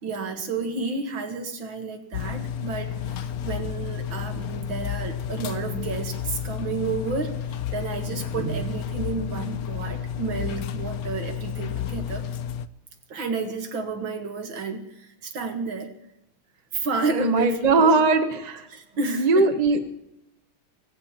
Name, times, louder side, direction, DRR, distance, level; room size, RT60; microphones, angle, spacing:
voice 1, 0.0-7.3 7.7-12.3 13.1-15.9 16.7-17.9 18.2-18.3 18.7-19.5, right 4 dB, 65° right, 6 dB, 2.5 m, -31 dB
sound 1, 2.1-12.7, left 9 dB, 70° left, 0.8 m, -31 dB
voice 2, 17.1-18.6 19.2-19.8, right 3 dB, 25° right, 7 dB, 0.9 m, -20 dB
18.5 x 15.5 x 4.4 m, 0.84 s
omnidirectional pair, 2.4 m